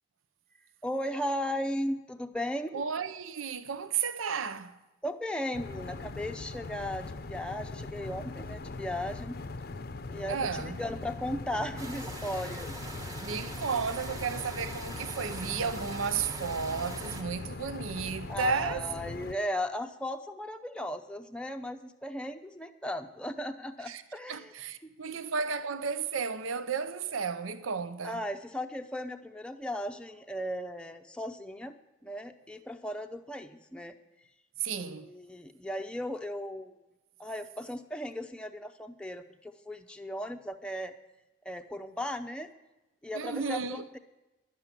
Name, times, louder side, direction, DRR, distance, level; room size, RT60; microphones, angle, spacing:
voice 1, 0.8-2.8 5.0-9.4 10.1-12.7 18.3-24.5 24.8-25.2 28.0-33.9 34.8-36.7 37.2-40.9 41.4-42.5 43.0-44.0, left 1 dB, 5° left, 0.6 m, -36 dB
voice 2, 2.7-4.7 10.3-10.8 13.2-18.8 23.9-24.0 24.3-28.2 34.6-35.1 43.1-43.8, right 6 dB, 85° right, 0.6 m, -33 dB
sound 1, 5.5-19.3, left 3 dB, 50° left, 0.6 m, -41 dB
sound 2, 11.8-17.2, right 2 dB, 20° right, 1.0 m, -43 dB
11.0 x 7.5 x 9.8 m
head